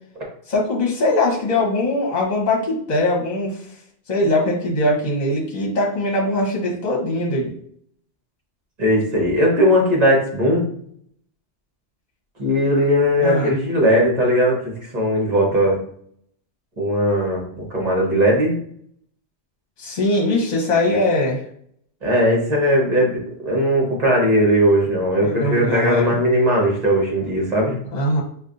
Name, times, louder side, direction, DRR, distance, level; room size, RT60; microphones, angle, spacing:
voice 1, 0.5-3.6 4.1-7.5 13.2-13.6 19.8-21.4 25.2-26.2 27.9-28.2, left 2 dB, 40° left, -2 dB, 1.0 m, -21 dB
voice 2, 8.8-10.7 12.4-15.8 16.8-18.6 22.0-27.8, equal, 35° right, -3 dB, 1.3 m, -18 dB
5.2 x 2.4 x 2.6 m, 0.63 s
omnidirectional pair, 1.2 m